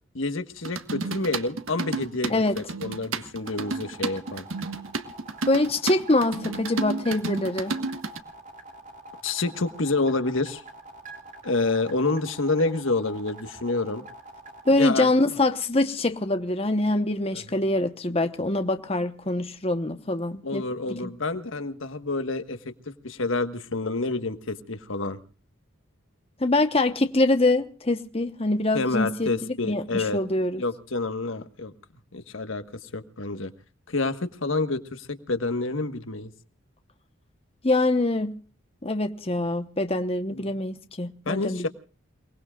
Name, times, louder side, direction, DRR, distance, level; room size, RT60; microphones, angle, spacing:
voice 1, 0.1-4.4 9.2-10.6 11.4-14.0 14.7-15.1 17.3-17.6 20.4-22.6 22.9-25.2 28.7-30.2 30.6-31.7 32.1-33.5 33.9-36.3 40.3-40.5 41.2-41.7, left 3 dB, 75° left, 1.4 m, -28 dB
sound 1, 0.6-8.2, right 3 dB, 80° right, 1.6 m, -32 dB
sound 2, 3.4-14.8, right 2 dB, 40° right, 3.0 m, -45 dB
voice 2, 5.5-7.8 14.7-20.6 21.0-21.1 26.4-30.6 37.6-38.3 38.8-41.6, left 2 dB, 30° left, 1.0 m, -24 dB
29.0 x 19.5 x 2.4 m
head